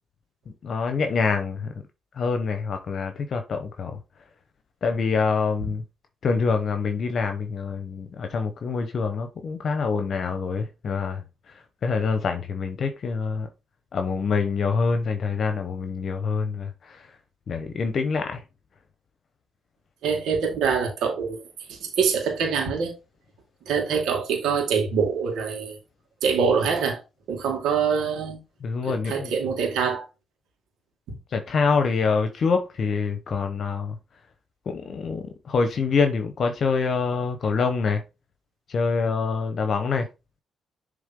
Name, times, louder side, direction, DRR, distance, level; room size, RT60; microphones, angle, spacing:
voice 1, 0.6-1.7 2.2-4.0 4.8-5.8 6.2-11.2 11.8-13.5 13.9-17.0 17.5-18.4 28.6-29.3 31.3-34.0 34.7-38.0 38.7-40.1, left 4 dB, 55° left, 1.0 m, -25 dB
voice 2, 20.0-21.4 21.7-22.9 23.7-25.8 26.2-27.0 27.3-28.4 28.8-30.0, right 6 dB, 80° right, 2.1 m, -24 dB
7.1 x 3.7 x 3.8 m
cardioid pair, 90°, 0 cm